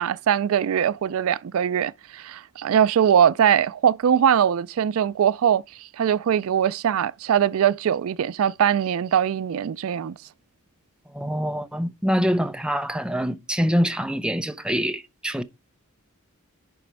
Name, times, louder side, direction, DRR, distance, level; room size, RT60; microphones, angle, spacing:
voice 1, 0.0-10.2, right 9 dB, 70° right, 0.3 m, -21 dB
voice 2, 11.1-15.4, equal, 5° right, 0.6 m, -25 dB
11.0 x 4.2 x 4.6 m
head